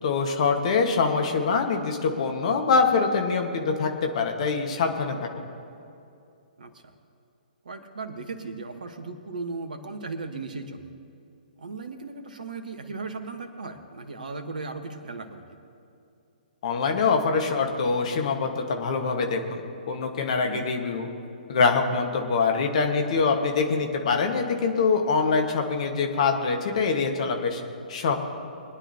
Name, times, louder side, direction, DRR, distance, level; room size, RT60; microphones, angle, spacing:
voice 1, 0.0-5.4 16.6-19.6 19.9-21.1 21.5-27.6 27.9-28.2, left 4 dB, 45° left, 3 dB, 1.6 m, -24 dB
voice 2, 6.6-6.9 7.6-10.9 11.6-15.4 20.4-20.7, right 3 dB, 60° right, 7 dB, 1.4 m, -37 dB
22.5 x 10.0 x 2.9 m, 2.6 s
figure-of-eight pair, 125°, 5 cm